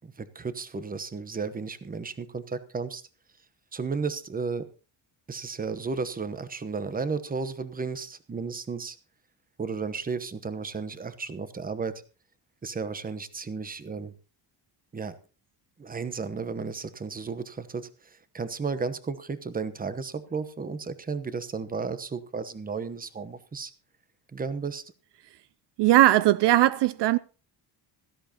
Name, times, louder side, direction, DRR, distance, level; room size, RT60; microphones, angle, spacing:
voice 1, 0.0-3.0 3.7-4.7 5.3-9.0 9.6-12.0 12.6-14.1 14.9-15.1 15.8-23.7 24.3-24.8, right 5 dB, 20° right, 0.9 m, -33 dB
voice 2, 25.8-27.2, right 15 dB, 65° right, 0.5 m, -19 dB
16.5 x 13.0 x 2.9 m
cardioid pair, 135°, 44 cm